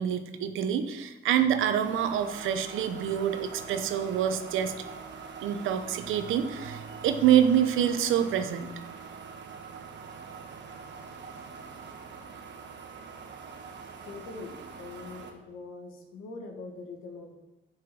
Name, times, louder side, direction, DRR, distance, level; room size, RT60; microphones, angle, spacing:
voice 1, 0.0-4.7 5.4-8.7, right 9 dB, 85° right, 9 dB, 0.8 m, -26 dB
sound 1, 1.7-15.3, right 5 dB, 65° right, 1.3 m, -44 dB
voice 2, 14.0-17.3, left 3 dB, 85° left, 3 dB, 1.6 m, -43 dB
7.6 x 5.8 x 6.1 m, 1.0 s
cardioid pair, 90°, 20 cm